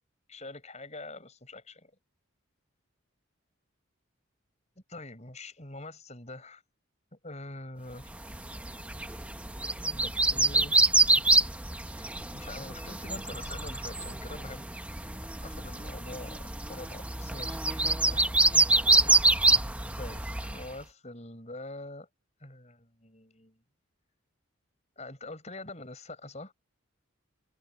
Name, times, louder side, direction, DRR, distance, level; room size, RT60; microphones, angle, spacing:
voice 1, 0.3-1.9 4.9-6.6 7.1-8.1 9.8-10.8 12.0-14.7 15.4-18.7 19.0-19.7 20.0-22.1 22.4-23.6 25.0-26.5, left 2 dB, 30° left, 6.8 m, -45 dB
sound 1, 8.2-20.7, right 2 dB, 5° right, 0.8 m, -26 dB
head